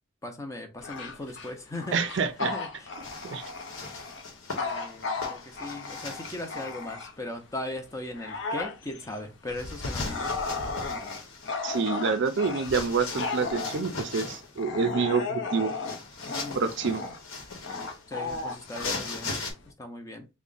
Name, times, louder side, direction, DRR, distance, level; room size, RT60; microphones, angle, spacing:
voice 1, 0.2-2.9 4.5-10.4 16.3-16.6 18.1-19.4 19.7-20.3, left 2 dB, 15° left, 0.5 m, -38 dB
Bark / Growling, 0.8-7.3 7.8-19.7, left 3 dB, 60° left, 0.6 m, -35 dB
voice 2, 1.9-2.5 3.2-3.4 11.6-15.7 16.6-17.0, right 5 dB, 60° right, 0.4 m, -27 dB
sound 1, 3.0-6.8 9.5-14.6 15.6-19.5, left 3 dB, 90° left, 1.0 m, -39 dB
3.5 x 2.1 x 3.8 m
head